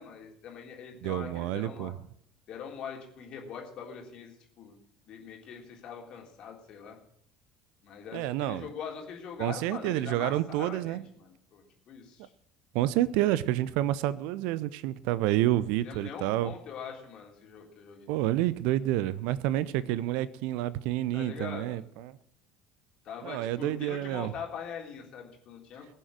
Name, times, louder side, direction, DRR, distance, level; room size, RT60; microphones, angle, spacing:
voice 1, 0.0-1.9 2.5-4.8 5.1-7.0 7.8-12.3 15.8-18.1 21.1-21.8 23.0-25.9, left 7 dB, 45° left, 1 dB, 3.5 m, -43 dB
voice 2, 1.0-1.9 8.1-8.7 9.4-11.0 12.7-16.5 18.1-22.2 23.2-24.3, right 14 dB, 55° right, 18 dB, 0.6 m, -29 dB
21.0 x 7.5 x 6.3 m, 0.69 s
figure-of-eight pair, 60°, 2 cm